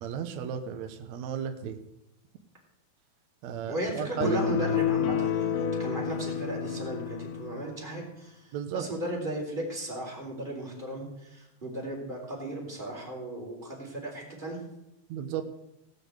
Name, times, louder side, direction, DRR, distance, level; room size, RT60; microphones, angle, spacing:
voice 1, 0.0-1.8 3.4-4.4 8.5-8.9 15.1-15.4, right 8 dB, 70° right, 6 dB, 1.8 m, -34 dB
voice 2, 3.7-14.6, right 1 dB, 15° right, -2 dB, 3.8 m, -35 dB
sound 1, 4.2-7.7, left 8 dB, 80° left, 3.1 m, -29 dB
17.5 x 6.8 x 8.1 m, 0.87 s
omnidirectional pair, 4.3 m